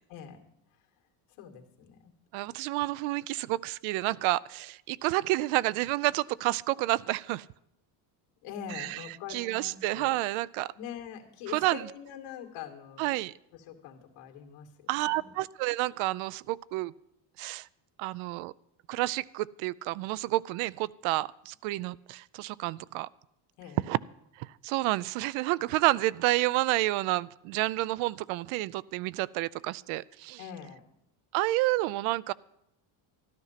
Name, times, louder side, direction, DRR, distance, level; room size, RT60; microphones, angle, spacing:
voice 1, 0.1-0.4 1.4-2.1 8.4-10.1 10.7-13.1 13.5-15.3 23.6-23.8 30.4-30.9, left 8 dB, 85° left, 3 dB, 2.4 m, -43 dB
voice 2, 2.3-7.4 8.7-9.0 9.3-10.7 11.5-11.8 13.0-13.3 14.9-16.9 17.4-17.7 18.0-18.5 18.9-23.1 23.9-24.0 24.4-30.4 31.3-32.3, right 18 dB, 75° right, 21 dB, 0.6 m, -29 dB
13.0 x 12.5 x 5.8 m, 0.79 s
cardioid pair, 175°, 48 cm